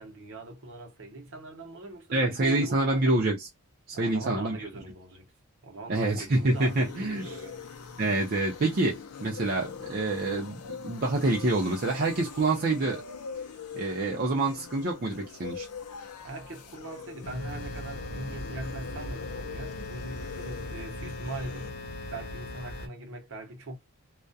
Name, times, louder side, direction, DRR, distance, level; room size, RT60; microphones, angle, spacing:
voice 1, 0.0-3.2 3.9-5.3 5.6-7.7 16.2-21.8 22.1-23.8, right 2 dB, 60° right, 0.8 m, -41 dB
voice 2, 2.1-3.5 3.9-4.6 5.9-7.4 8.0-13.0 13.7-15.7, right 2 dB, 40° right, 0.5 m, -27 dB
sound 1, 6.1-21.7, left 6 dB, 90° left, 0.6 m, -43 dB
sound 2, 17.2-22.9, left 1 dB, 40° left, 0.6 m, -39 dB
2.3 x 2.1 x 2.5 m
head